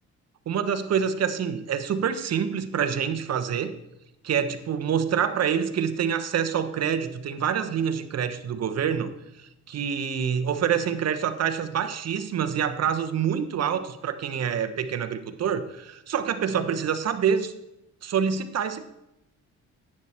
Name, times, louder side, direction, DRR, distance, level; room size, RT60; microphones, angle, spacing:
voice 1, 0.5-3.8 4.2-17.5 18.0-18.8, right 7 dB, 55° right, 9 dB, 1.1 m, -26 dB
10.5 x 8.8 x 4.4 m, 0.90 s
cardioid pair, 90°, 30 cm